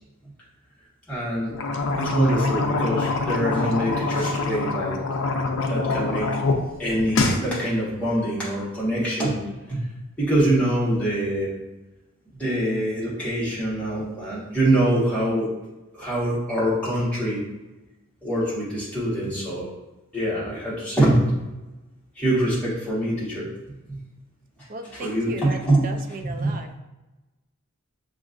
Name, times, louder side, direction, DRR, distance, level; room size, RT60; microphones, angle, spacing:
voice 1, 1.1-1.6 2.0-5.0 5.6-6.3 6.8-9.4 9.7-9.8 10.2-11.5 12.3-15.5 15.9-17.4 18.2-19.7 20.1-21.5 22.2-23.5 23.9-24.0 25.0-25.9 26.2-26.6, right 1 dB, 5° left, -9 dB, 1.3 m, -24 dB
sound 1, 1.5-6.6 6.9-7.4, left 3 dB, 60° left, 0.5 m, -25 dB
voice 2, 24.7-26.7, right 3 dB, 40° right, 5 dB, 0.4 m, -36 dB
6.0 x 2.5 x 2.5 m, 1.1 s
head